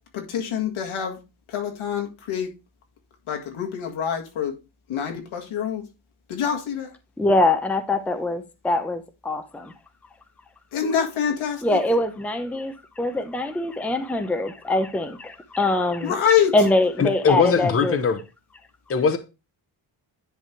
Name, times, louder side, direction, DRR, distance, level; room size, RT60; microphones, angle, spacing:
voice 1, 0.1-1.2 1.5-2.5 3.3-4.5 4.9-5.8 6.3-6.9 10.7-11.8 16.0-16.5, left 8 dB, 90° left, 2.1 m, -25 dB
voice 2, 7.2-9.7 11.6-16.2 16.5-18.0, left 2 dB, 5° left, 0.6 m, -23 dB
voice 3, 17.0-18.2 18.9-19.2, left 5 dB, 30° left, 0.9 m, -20 dB
10.0 x 3.5 x 4.5 m
cardioid pair, 140°, 47 cm